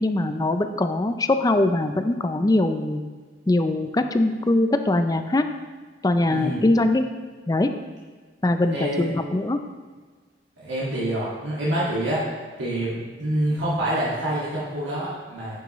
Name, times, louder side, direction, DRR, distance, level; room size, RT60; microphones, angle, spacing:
voice 1, 0.0-3.0 3.5-5.5 6.0-7.0 7.5-7.7 8.4-9.6, left 2 dB, 20° left, 8 dB, 0.4 m, -22 dB
voice 2, 6.3-6.6 8.7-9.1 10.6-12.3 12.6-15.6, right 1 dB, 80° right, -8 dB, 2.0 m, -26 dB
9.5 x 7.0 x 3.1 m, 1.5 s
head